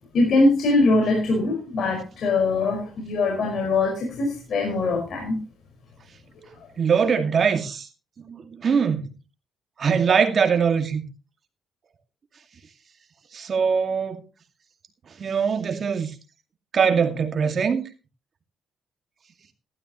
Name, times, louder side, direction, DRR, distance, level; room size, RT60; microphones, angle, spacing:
voice 1, 0.1-5.4, left 2 dB, 60° left, 5.2 m, -22 dB
voice 2, 6.8-7.9 8.2-9.0 9.8-11.0 13.3-14.2 15.2-16.1 16.7-17.8, right 6 dB, 50° right, 2.3 m, -22 dB
15.5 x 13.0 x 3.1 m
cardioid pair, 90°, 0 cm